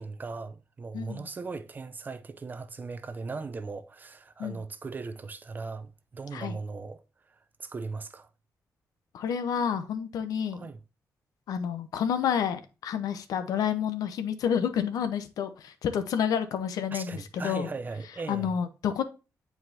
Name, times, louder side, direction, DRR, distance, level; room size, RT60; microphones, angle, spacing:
voice 1, 0.0-7.0 7.3-8.3 10.5-10.8 16.9-18.5, right 4 dB, 30° right, 0.5 m, -38 dB
voice 2, 0.9-1.3 4.4-4.6 6.3-6.6 9.1-10.7 11.5-17.7 18.3-19.0, left 8 dB, 90° left, 0.8 m, -29 dB
7.8 x 4.6 x 2.7 m
cardioid pair, 120°, 6 cm